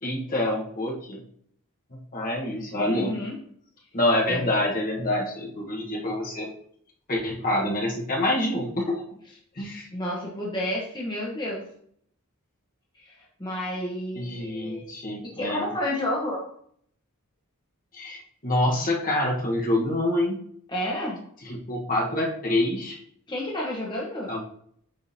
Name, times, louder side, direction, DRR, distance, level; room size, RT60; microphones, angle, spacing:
voice 1, 0.0-1.2 2.1-3.1 3.9-6.5 7.1-9.0 9.5-9.9 14.1-15.7 17.9-20.4 21.4-23.0 24.3-24.4, left 1 dB, 40° left, -1 dB, 1.2 m, -26 dB
voice 2, 2.8-3.4 4.3-4.4 9.6-11.6 13.0-14.8 15.2-16.4 20.7-21.2 23.3-24.3, left 1 dB, 20° left, -3 dB, 1.1 m, -31 dB
8.9 x 3.8 x 2.8 m, 0.64 s
head